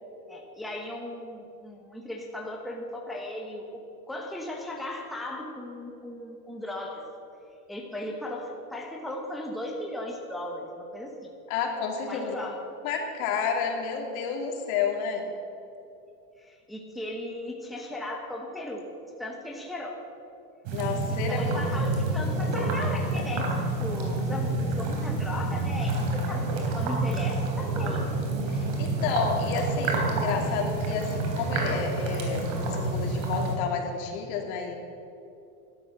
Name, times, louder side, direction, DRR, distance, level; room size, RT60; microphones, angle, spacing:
voice 1, 0.3-7.0 7.7-11.3 12.1-12.6 16.4-18.9 19.2-20.0 21.3-23.5 23.8-28.0, left 1 dB, ahead, 0 dB, 1.2 m, -37 dB
voice 2, 11.5-12.4 12.8-15.2 20.7-21.9 28.5-34.7, left 6 dB, 65° left, 2 dB, 2.7 m, -30 dB
sound 1, 20.7-33.6, right 2 dB, 65° right, 3.6 m, -28 dB
12.5 x 11.5 x 6.7 m, 2.7 s
supercardioid pair, 140°, 45 cm